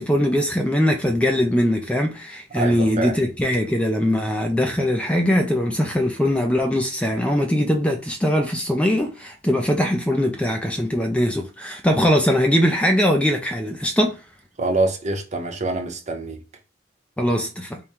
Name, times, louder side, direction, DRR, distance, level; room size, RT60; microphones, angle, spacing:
voice 1, 0.0-14.2 17.2-17.8, equal, 5° left, 0.4 m, -21 dB
voice 2, 2.6-3.1 14.6-16.4, right 2 dB, 40° right, 0.7 m, -25 dB
3.5 x 2.1 x 4.4 m
head